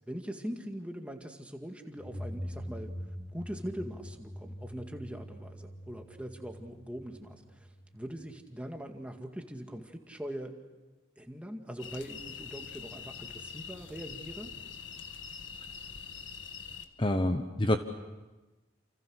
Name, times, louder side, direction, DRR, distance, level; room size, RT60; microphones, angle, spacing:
voice 1, 0.1-2.9 3.3-10.5 11.2-14.5, equal, 5° right, 4 dB, 2.0 m, -42 dB
sound 1, 2.0-8.5, equal, 55° left, 2.7 m, -44 dB
sound 2, 11.8-16.9, left 6 dB, 70° left, 1.8 m, -44 dB
voice 2, 17.0-17.8, left 1 dB, 25° left, 7 dB, 1.0 m, -27 dB
29.5 x 28.5 x 6.5 m, 1.1 s
head